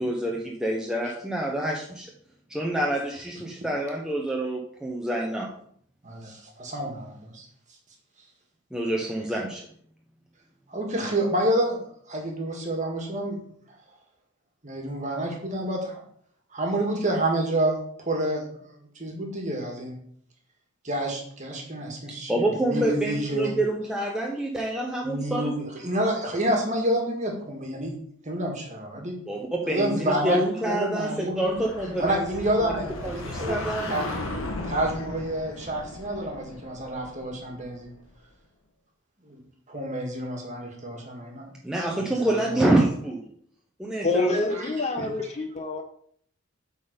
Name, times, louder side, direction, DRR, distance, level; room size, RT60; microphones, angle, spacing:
voice 1, 0.0-2.1 2.5-5.5 8.7-9.6 22.3-25.5 29.3-32.7 33.0-33.9 41.6-43.2 43.8-44.5, right 1 dB, 5° right, -2 dB, 0.8 m, -27 dB
voice 2, 6.0-7.4 10.7-11.8 12.1-13.4 14.6-16.0 16.5-18.7 19.0-20.0 20.8-23.5 25.0-27.9 28.2-29.1 29.7-30.4 30.6-31.6 32.0-34.0 34.6-37.9 39.3-39.4 39.7-41.5 41.9-42.0 42.3-42.4 44.5-45.1, right 1 dB, 35° right, 1 dB, 1.7 m, -28 dB
sound 1, 31.4-38.0, left 2 dB, 85° left, 1.2 m, -36 dB
voice 3, 44.0-45.8, left 3 dB, 30° left, 5 dB, 0.6 m, -26 dB
8.3 x 4.0 x 5.1 m, 0.63 s
head